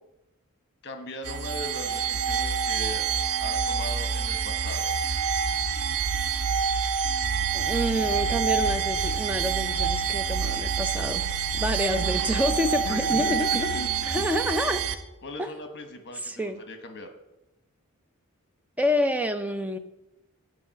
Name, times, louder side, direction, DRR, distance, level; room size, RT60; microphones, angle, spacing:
voice 1, 0.8-3.1 3.4-4.9 12.8-14.3 15.2-17.1, left 1 dB, 50° left, 7 dB, 1.2 m, -39 dB
sound 1, 1.3-15.0, right 6 dB, 75° right, 0.7 m, -27 dB
voice 2, 7.5-11.2 11.5-13.7 14.1-14.8 15.4-15.5 16.2-16.6 18.8-19.8, equal, 5° right, 8 dB, 0.6 m, -28 dB
Sink (filling or washing), 11.9-13.8 14.2-14.4 14.8-14.9, right 1 dB, 35° left, 2.7 m, -45 dB
8.2 x 5.5 x 7.5 m, 0.94 s
head